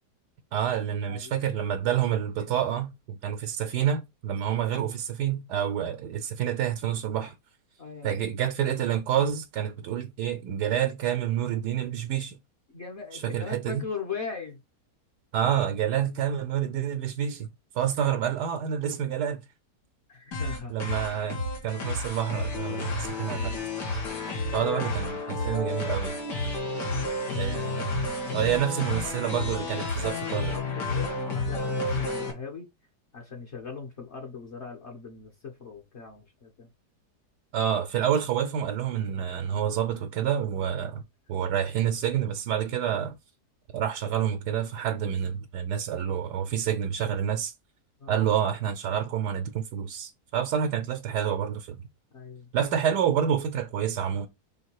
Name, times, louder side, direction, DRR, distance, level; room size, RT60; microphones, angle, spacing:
voice 1, 0.5-7.4 8.0-12.4 13.1-13.8 15.3-17.5 17.7-19.4 20.7-23.5 24.5-26.2 27.4-30.5 37.5-41.0 41.3-43.2 43.7-47.5 48.1-51.8 52.5-54.3, right 9 dB, 80° right, 1.3 m, -28 dB
voice 2, 1.1-1.5 2.4-2.5 7.8-8.4 12.7-14.6 18.0-18.1 20.1-20.7 26.8-27.5 28.4-32.7 33.1-36.7 39.6-39.8 48.0-48.2 52.1-52.5, left 5 dB, 45° left, 1.4 m, -40 dB
sound 1, 20.3-32.3, left 2 dB, 80° left, 2.4 m, -31 dB
5.7 x 3.5 x 4.7 m
omnidirectional pair, 1.8 m